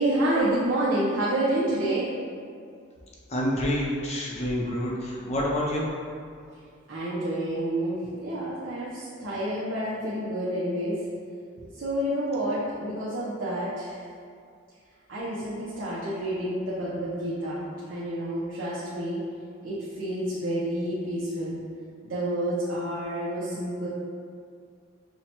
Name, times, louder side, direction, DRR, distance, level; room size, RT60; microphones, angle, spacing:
voice 1, 0.0-2.1 6.9-11.0 11.7-14.0 15.1-19.2 19.6-21.6 22.0-23.9, right 1 dB, 70° right, -8 dB, 0.6 m, -29 dB
voice 2, 3.3-5.9, equal, 30° left, -4 dB, 0.5 m, -27 dB
5.7 x 2.1 x 2.8 m, 2.2 s
head